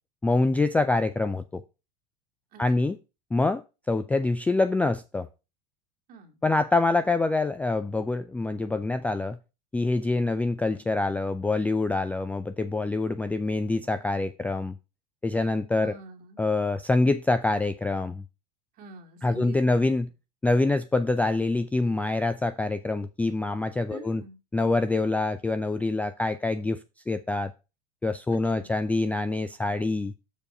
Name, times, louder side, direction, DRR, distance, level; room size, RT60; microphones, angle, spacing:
voice 1, 0.2-1.6 2.6-3.0 3.3-5.3 6.4-9.4 9.7-14.8 15.2-15.9 16.4-18.2 19.2-20.1 20.4-24.2 24.5-26.8 27.1-27.5 28.0-30.1, left 2 dB, 5° left, 0.3 m, -25 dB
voice 2, 2.5-2.9 6.1-6.4 15.8-16.4 18.7-19.8 20.0-20.1 23.9-24.4 28.3-28.7, right 4 dB, 45° right, 2.2 m, -46 dB
7.1 x 4.5 x 5.3 m
hypercardioid pair, 85°, 21 cm